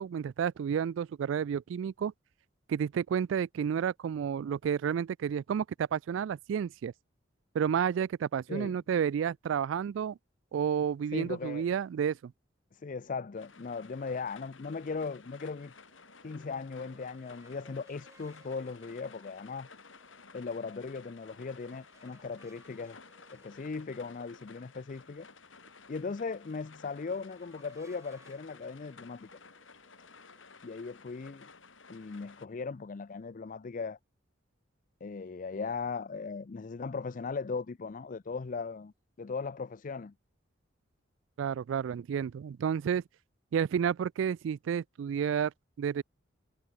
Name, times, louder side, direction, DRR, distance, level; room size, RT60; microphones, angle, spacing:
voice 1, 0.0-2.1 2.7-6.9 7.5-10.2 10.5-12.3 41.4-43.0 43.5-45.5 45.8-46.0, right 8 dB, 75° right, 0.3 m, -31 dB
voice 2, 11.1-11.7 12.7-15.7 16.2-19.7 20.3-23.0 23.3-25.3 25.9-29.3 30.6-31.5 31.9-34.0 35.0-38.9 39.2-40.1, left 4 dB, 45° left, 0.5 m, -38 dB
sound 1, 13.4-32.5, left 4 dB, 85° left, 4.9 m, -55 dB
sound 2, 15.6-30.4, right 2 dB, 15° right, 6.6 m, -65 dB
head